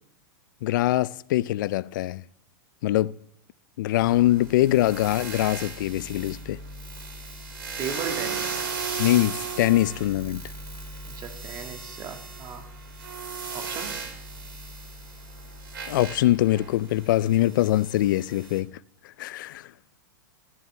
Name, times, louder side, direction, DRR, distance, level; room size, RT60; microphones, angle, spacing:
voice 1, 0.6-2.2 2.8-3.1 3.8-6.6 9.0-10.4 15.9-18.8 19.2-19.7, left 15 dB, 65° left, 0.4 m, -23 dB
sound 1, 4.0-18.6, right 4 dB, 85° right, 4.1 m, -36 dB
voice 2, 7.8-8.6 11.1-12.7 13.5-14.0, right 6 dB, 35° right, 2.0 m, -36 dB
14.0 x 10.0 x 3.3 m
hypercardioid pair, 125°, 11 cm